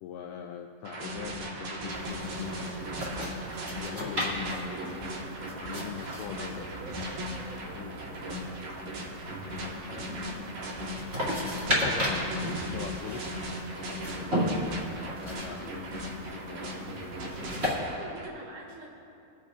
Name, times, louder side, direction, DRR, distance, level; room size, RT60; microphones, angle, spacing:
voice 1, 0.0-3.4 3.8-5.0 5.6-6.7 7.7-8.4 9.9-10.2 11.7-13.3 13.6-14.6 15.2-16.7, left 8 dB, 85° left, 2 dB, 2.2 m, -43 dB
sound 1, 0.8-18.3, equal, 60° right, 2.6 m, -38 dB
sound 2, 1.9-17.8, equal, 35° right, 0.9 m, -35 dB
Brass instrument, 2.3-6.2, equal, 10° right, 2.1 m, -55 dB
voice 2, 6.3-7.1 7.4-7.8 17.8-18.9, right 3 dB, 90° right, -4 dB, 4.5 m, -46 dB
24.5 x 8.5 x 2.5 m, 2.6 s
omnidirectional pair, 5.0 m